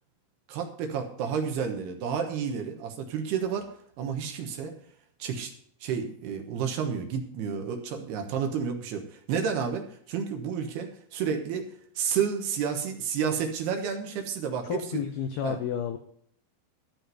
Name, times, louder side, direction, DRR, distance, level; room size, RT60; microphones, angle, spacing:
voice 1, 0.5-3.7 4.0-4.8 5.2-5.5 5.8-11.6 12.0-15.0 15.4-15.6, right 7 dB, 70° right, 5 dB, 2.9 m, -31 dB
voice 2, 14.6-16.0, left 8 dB, 85° left, 7 dB, 2.2 m, -31 dB
14.0 x 5.5 x 7.6 m, 0.66 s
omnidirectional pair, 5.4 m